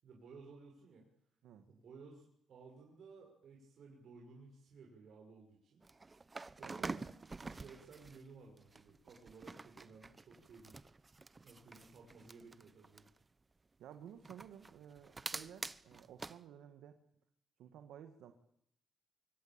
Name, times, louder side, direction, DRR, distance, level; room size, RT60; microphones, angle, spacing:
voice 1, 0.0-1.1 1.7-5.8 6.6-7.1 7.4-10.7 11.4-13.1, right 4 dB, 65° right, 0 dB, 6.2 m, -57 dB
sound 1, 5.8-8.2 8.6-13.2 14.2-16.4, right 3 dB, 25° right, 1.0 m, -47 dB
voice 2, 6.6-7.0 13.8-17.0 17.6-18.3, right 9 dB, 90° right, 8 dB, 1.8 m, -54 dB
25.0 x 24.5 x 9.0 m, 0.74 s
cardioid pair, 95°, 0 cm